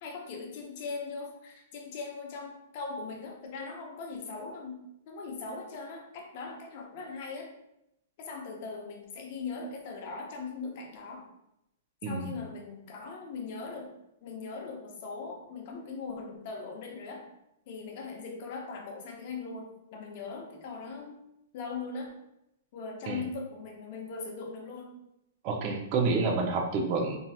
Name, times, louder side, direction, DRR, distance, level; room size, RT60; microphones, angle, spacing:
voice 1, 0.0-7.5 8.2-11.3 12.0-13.9 14.2-17.3 17.7-21.2 21.5-22.2 22.7-24.9, left 4 dB, 50° left, 2 dB, 0.7 m, -40 dB
voice 2, 12.0-12.3 23.1-23.2 25.4-27.2, right 3 dB, 40° right, 1 dB, 0.6 m, -28 dB
3.1 x 2.7 x 2.3 m, 0.84 s
hypercardioid pair, 140°, 0 cm